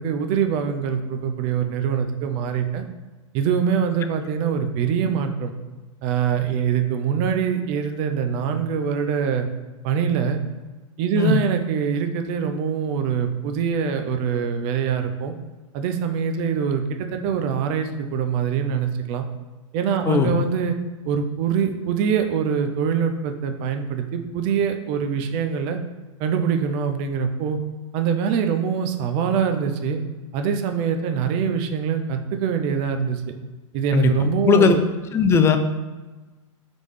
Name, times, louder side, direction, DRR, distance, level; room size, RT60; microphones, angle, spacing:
voice 1, 0.0-2.8 3.3-5.5 6.0-9.5 9.8-10.4 11.0-15.3 15.7-19.3 19.7-20.7 21.0-25.8 26.2-27.6 27.9-30.0 30.3-33.2 33.7-34.8, right 7 dB, 45° right, 6 dB, 0.5 m, -24 dB
voice 2, 20.1-20.4 33.9-34.1 34.4-34.8 35.1-35.6, left 6 dB, 15° left, 8 dB, 0.3 m, -17 dB
4.1 x 3.1 x 3.3 m, 1.2 s
hypercardioid pair, 115°, 17 cm